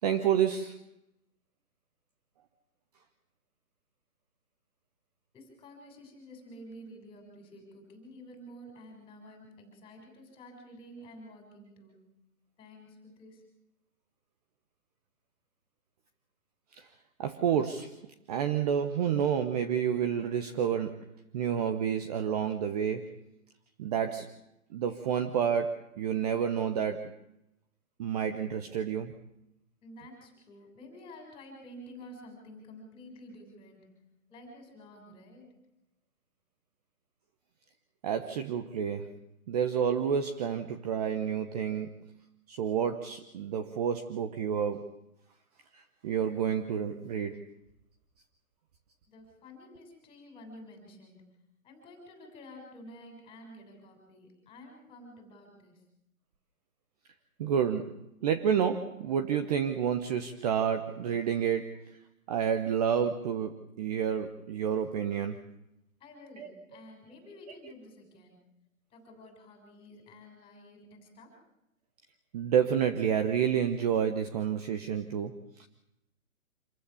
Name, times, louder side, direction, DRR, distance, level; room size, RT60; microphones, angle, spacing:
voice 1, 0.0-0.8 16.7-16.9 17.2-18.0 18.3-23.1 23.8-24.3 24.7-27.1 28.0-29.2 38.0-39.1 39.5-42.1 42.5-44.9 45.7-47.4 57.4-62.0 62.3-65.4 66.4-66.5 72.3-75.7, right 8 dB, 25° right, 7 dB, 1.1 m, -29 dB
voice 2, 5.3-12.1 12.6-13.4 29.8-34.0 34.3-35.5 49.1-51.2 51.6-55.8 66.0-68.4 68.9-71.4, left 1 dB, 15° left, 3 dB, 6.4 m, -50 dB
27.0 x 15.0 x 7.2 m, 0.85 s
figure-of-eight pair, 145°, 43 cm